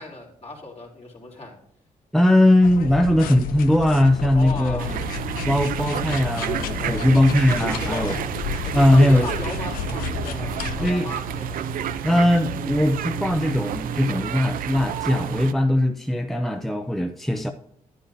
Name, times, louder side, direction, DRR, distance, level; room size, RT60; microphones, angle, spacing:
voice 1, 0.0-1.5 4.3-5.0 6.8-8.3 8.6-11.6, left 2 dB, 45° left, -1 dB, 3.5 m, -37 dB
voice 2, 2.1-5.0 5.4-8.2 8.7-9.3 10.8-11.1 12.0-17.5, left 1 dB, ahead, 6 dB, 0.6 m, -19 dB
sound 1, 2.6-10.9, left 8 dB, 85° left, 0.6 m, -32 dB
sound 2, 4.8-15.5, right 8 dB, 75° right, 0.6 m, -30 dB
10.0 x 9.7 x 2.7 m, 0.76 s
supercardioid pair, 60°, 15 cm